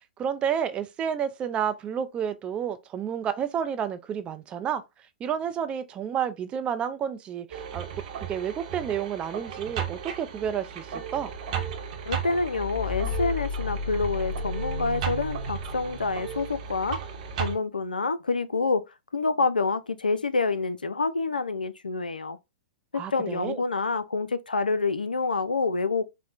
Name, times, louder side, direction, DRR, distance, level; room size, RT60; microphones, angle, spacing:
voice 1, 0.2-4.8 5.2-7.9 8.2-11.3 22.9-23.6, right 8 dB, 25° right, 0.4 m, -30 dB
sound 1, 7.5-17.6, right 3 dB, 50° right, 0.9 m, -33 dB
voice 2, 12.0-17.0 17.4-22.4 22.9-26.0, left 4 dB, 90° left, 0.3 m, -27 dB
4.3 x 2.0 x 2.4 m
figure-of-eight pair, 110°, 5 cm